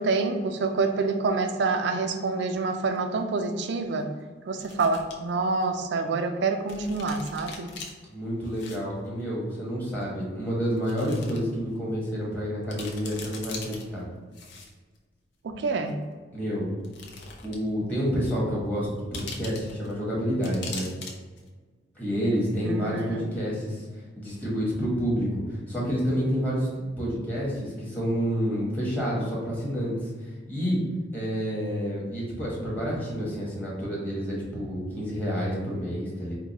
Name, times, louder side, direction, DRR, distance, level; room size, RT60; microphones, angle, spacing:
voice 1, 0.0-4.1 4.5-7.7 15.4-16.1 22.6-23.3, right 3 dB, 65° right, 6 dB, 0.4 m, -27 dB
sound 1, 3.0-3.1 4.5-5.1 5.6-5.7 6.7-7.9 8.4-8.8 9.0-9.1 10.0-10.1 10.8-11.4 11.8-11.9 12.3-12.4 12.6-13.8 14.3-15.0 15.9-16.0 16.8-17.7 18.0-18.1 19.1-19.9 20.4-21.1 21.4-21.5, left 4 dB, 70° left, 0.6 m, -41 dB
voice 2, 8.1-14.0 15.5-15.6 16.3-16.7 17.4-20.9 21.9-23.9 24.2-30.1 30.5-30.8 31.1-36.3, equal, 10° left, -6 dB, 1.0 m, -29 dB
4.6 x 2.2 x 2.7 m, 1.4 s
head